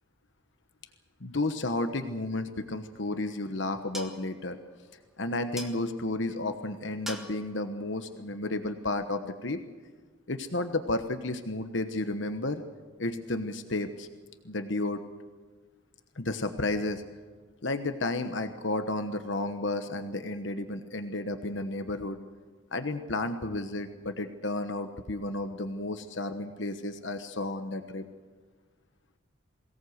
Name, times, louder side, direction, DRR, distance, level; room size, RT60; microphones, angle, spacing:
voice 1, 1.2-4.6 5.2-9.6 10.3-12.6 13.0-14.1 14.4-15.0 16.2-17.0 17.6-22.2 22.7-28.0, left 2 dB, 60° left, 7 dB, 1.2 m, -32 dB
sound 1, 2.8-9.2, equal, ahead, 1.6 m, -47 dB
22.5 x 17.5 x 8.0 m, 1.4 s
head